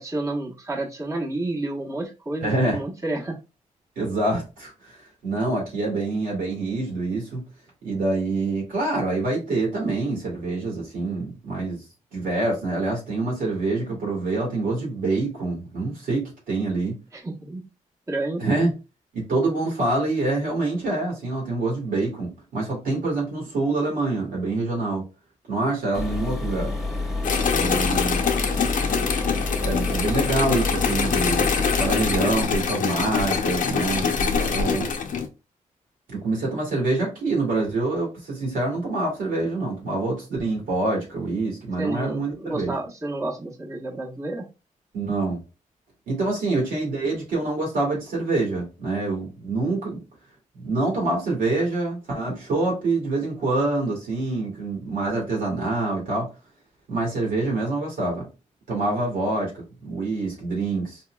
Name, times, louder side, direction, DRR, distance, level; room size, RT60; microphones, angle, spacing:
voice 1, 0.0-3.4 17.1-17.6 18.1-18.4 41.8-44.5 46.5-46.6, right 2 dB, 20° right, 1.1 m, -30 dB
voice 2, 2.4-2.8 4.0-4.7 5.2-7.4 7.8-11.8 12.1-17.0 18.4-18.7 19.1-25.1 25.5-26.7 27.5-28.3 29.6-31.5 31.8-34.9 36.1-42.7 44.9-45.4 46.1-50.0 50.6-56.3 56.9-58.3 58.7-61.0, right 2 dB, 90° right, 2.0 m, -26 dB
sound 1, 25.9-32.2, left 2 dB, ahead, 1.2 m, -28 dB
sound 2, 27.2-35.3, left 6 dB, 70° left, 0.6 m, -24 dB
4.0 x 2.7 x 2.3 m
cardioid pair, 65°, 14 cm